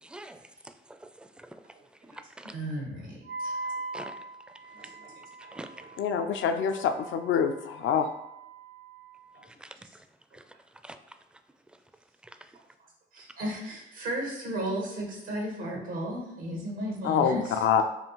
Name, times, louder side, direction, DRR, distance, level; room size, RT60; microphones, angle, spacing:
voice 1, 0.0-0.4 0.9-1.6 2.0-2.1 2.4-2.5 3.9-4.2 5.5-5.7 9.4-10.0 10.3-10.4 10.8-11.0 12.4-12.5, right 1 dB, 5° right, 8 dB, 0.4 m, -45 dB
voice 2, 2.5-3.6 4.7-5.2 13.1-17.6, right 1 dB, 90° right, -1 dB, 1.1 m, -35 dB
Wind instrument woodwind instrument, 3.2-9.4, right 2 dB, 60° right, 0.5 m, -42 dB
voice 3, 6.0-8.1 17.0-17.8, left 7 dB, 70° left, 8 dB, 0.4 m, -26 dB
5.3 x 2.3 x 3.0 m, 0.88 s
supercardioid pair, 50°, 21 cm